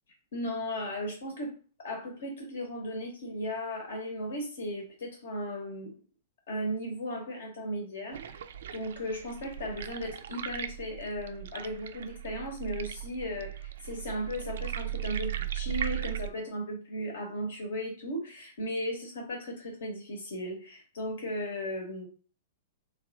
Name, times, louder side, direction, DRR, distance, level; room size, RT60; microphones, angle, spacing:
voice 1, 0.3-1.5 1.8-5.9 6.5-8.4 8.7-22.1, equal, 65° left, 2 dB, 0.9 m, -36 dB
sound 1, 8.1-16.3, right 12 dB, 65° right, 0.3 m, -37 dB
3.1 x 2.3 x 3.7 m, 0.37 s
figure-of-eight pair, 105°, 0 cm